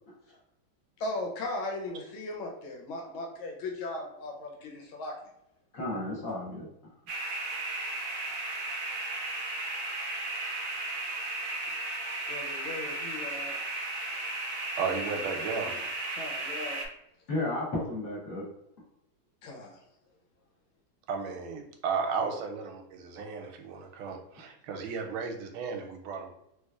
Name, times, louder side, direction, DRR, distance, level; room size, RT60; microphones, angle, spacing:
voice 1, 1.0-5.2 12.3-13.6 15.4-15.8 16.1-16.8 19.4-19.8, left 2 dB, 85° left, 1 dB, 1.6 m, -38 dB
voice 2, 5.7-6.7 17.3-18.5, left 2 dB, 45° left, -6 dB, 1.4 m, -33 dB
sound 1, 7.1-16.9, right 2 dB, 70° right, 1.1 m, -35 dB
voice 3, 14.8-15.8 21.1-26.3, right 5 dB, 85° right, 3 dB, 1.4 m, -34 dB
3.2 x 3.2 x 2.3 m, 0.81 s
omnidirectional pair, 2.2 m